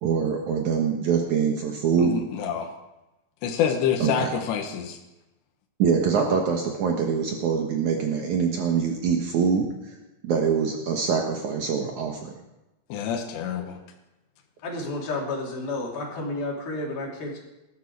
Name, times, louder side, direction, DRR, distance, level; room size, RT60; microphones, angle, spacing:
voice 1, 0.0-2.1 4.0-4.3 5.8-9.9 10.2-12.3, right 6 dB, 80° right, 2 dB, 1.7 m, -24 dB
voice 2, 2.0-2.7 3.4-5.0 12.9-13.8, left 8 dB, 75° left, 2 dB, 3.3 m, -27 dB
voice 3, 14.6-17.4, left 2 dB, 55° left, -2 dB, 4.5 m, -31 dB
19.5 x 13.0 x 4.7 m, 0.99 s
omnidirectional pair, 5.5 m